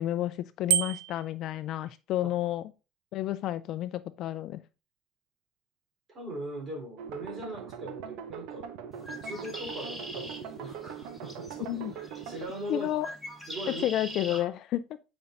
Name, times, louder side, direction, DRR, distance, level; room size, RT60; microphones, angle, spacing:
voice 1, 0.0-2.6 3.1-4.6 11.7-11.9 12.7-13.1 13.7-15.0, left 13 dB, 50° left, 0.4 m, -31 dB
Bicycle bell, 0.7-1.3, right 11 dB, 90° right, 0.3 m, -27 dB
voice 2, 6.1-8.7 9.1-12.9 13.5-13.8 14.3-14.5, right 1 dB, 30° right, 3.9 m, -40 dB
sound 1, 7.0-12.4, right 8 dB, 70° right, 0.8 m, -41 dB
Bird, 8.9-14.4, equal, ahead, 1.5 m, -43 dB
8.6 x 5.2 x 2.6 m
cardioid pair, 140°, 0 cm